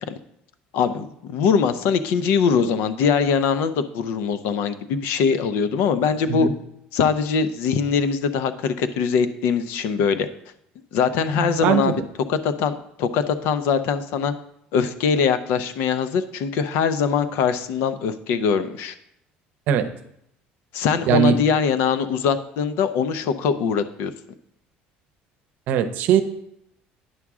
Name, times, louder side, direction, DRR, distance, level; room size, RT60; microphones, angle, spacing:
voice 1, 0.7-6.5 6.9-10.3 10.9-12.0 12.3-12.7 13.0-14.3 14.7-18.9 20.7-24.1, left 6 dB, 75° left, 11 dB, 0.6 m, -22 dB
voice 2, 11.6-11.9 19.7-19.9 21.1-21.4 25.7-26.2, right 8 dB, 60° right, 9 dB, 0.7 m, -19 dB
9.6 x 6.1 x 3.6 m, 0.76 s
cardioid pair, 155°, 4 cm